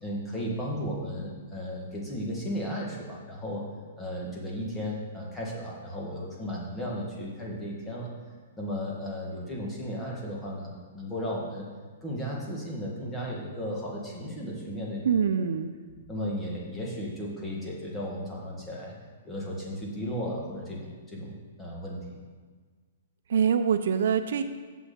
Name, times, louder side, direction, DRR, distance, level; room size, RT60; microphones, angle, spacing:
voice 1, 0.0-3.6 4.0-8.1 8.6-11.7 12.0-15.0 16.1-18.9 19.2-22.2, equal, 10° left, -4 dB, 1.6 m, -35 dB
voice 2, 15.0-15.8 23.3-24.4, right 7 dB, 70° right, 9 dB, 0.6 m, -24 dB
7.2 x 6.1 x 6.9 m, 1.5 s
hypercardioid pair, 165°, 0 cm